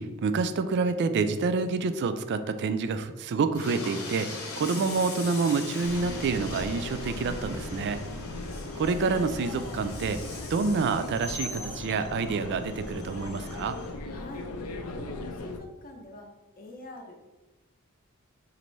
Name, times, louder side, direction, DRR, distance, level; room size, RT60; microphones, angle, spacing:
voice 1, 0.0-4.3 4.6-8.0 8.8-10.2 10.5-13.8, right 4 dB, 50° right, 10 dB, 0.3 m, -28 dB
Train, 3.5-13.9, left 3 dB, 65° left, 0.9 m, -41 dB
sound 1, 5.8-15.6, left 2 dB, 85° left, 0.5 m, -38 dB
voice 2, 14.1-14.5 14.9-16.3 16.6-17.3, left 2 dB, 40° left, 2 dB, 0.6 m, -45 dB
5.2 x 2.6 x 3.1 m, 1.1 s
head